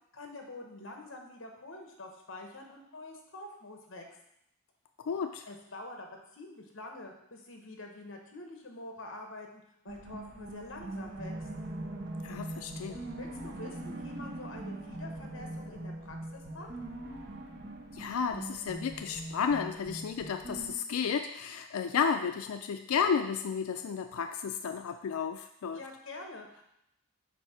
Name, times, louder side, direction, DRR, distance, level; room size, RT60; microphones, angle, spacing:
voice 1, 0.1-4.1 5.5-11.3 13.2-16.7 25.7-26.6, left 2 dB, 60° left, 2 dB, 1.1 m, -46 dB
voice 2, 5.0-5.4 12.2-13.0 17.9-25.8, left 6 dB, 80° left, 7 dB, 0.4 m, -32 dB
sound 1, 9.9-20.7, right 1 dB, 50° right, 0.8 m, -42 dB
7.5 x 2.7 x 5.7 m, 0.79 s
head